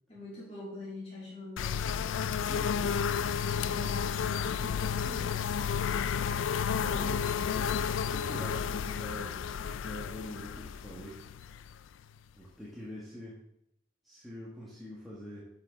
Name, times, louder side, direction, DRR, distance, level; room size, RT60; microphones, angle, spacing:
voice 1, 0.1-2.0 3.5-5.6, left 2 dB, 30° left, -8 dB, 2.4 m, -45 dB
sound 1, 1.6-12.2, left 7 dB, 75° left, 0.3 m, -32 dB
voice 2, 2.4-2.9 6.7-11.2 12.3-13.4 14.0-15.5, equal, ahead, -8 dB, 1.4 m, -45 dB
6.9 x 5.9 x 5.0 m, 0.78 s
head